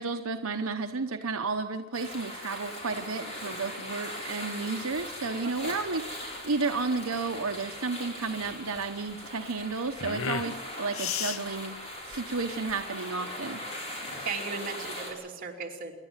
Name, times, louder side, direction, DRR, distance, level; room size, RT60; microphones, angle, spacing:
voice 1, 0.0-13.6 14.6-14.7, right 4 dB, 80° right, 5 dB, 0.9 m, -32 dB
sound 1, 1.9-15.1, left 1 dB, 30° left, 5.1 m, -40 dB
sound 2, 4.9-13.0, left 8 dB, 75° left, 0.8 m, -38 dB
voice 2, 5.4-5.8 14.0-15.9, right 4 dB, 40° right, -1 dB, 3.1 m, -37 dB
26.5 x 11.5 x 9.0 m, 1.2 s
head